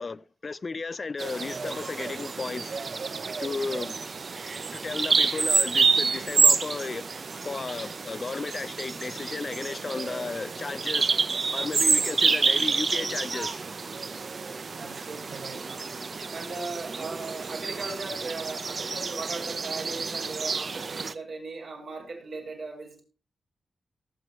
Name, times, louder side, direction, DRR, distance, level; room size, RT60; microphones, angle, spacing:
voice 1, 0.0-2.8 3.4-3.9 4.7-7.1 7.4-11.1 11.5-13.6, left 4 dB, 40° left, 0.5 m, -34 dB
Bird vocalization bird call bird song, 1.2-21.1, right 4 dB, 50° right, 0.7 m, -28 dB
voice 2, 14.8-15.8 16.3-23.0, right 3 dB, 70° right, 5.7 m, -38 dB
18.5 x 7.8 x 3.1 m
cardioid pair, 90°, 0 cm